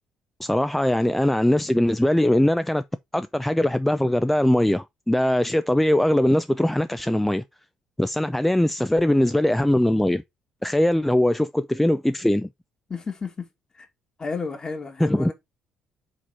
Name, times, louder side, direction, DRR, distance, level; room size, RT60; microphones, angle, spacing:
voice 1, 0.4-2.8 3.1-7.4 8.0-10.2 10.6-12.5 15.0-15.3, left 1 dB, 5° left, 0.5 m, -21 dB
voice 2, 12.9-13.5 13.7-13.9 14.2-15.3, left 4 dB, 35° left, 2.2 m, -32 dB
5.0 x 4.3 x 5.2 m
hypercardioid pair, 55°, 2 cm